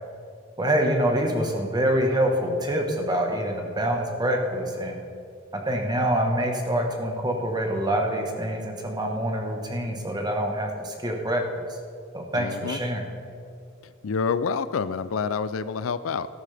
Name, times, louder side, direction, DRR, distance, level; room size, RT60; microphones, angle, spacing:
voice 1, 0.6-5.0 5.7-11.6 12.1-13.1, right 1 dB, 20° right, 2 dB, 1.3 m, -26 dB
voice 2, 12.3-12.8 14.0-16.3, left 5 dB, 85° left, 15 dB, 0.4 m, -27 dB
14.5 x 12.5 x 3.4 m, 2.4 s
head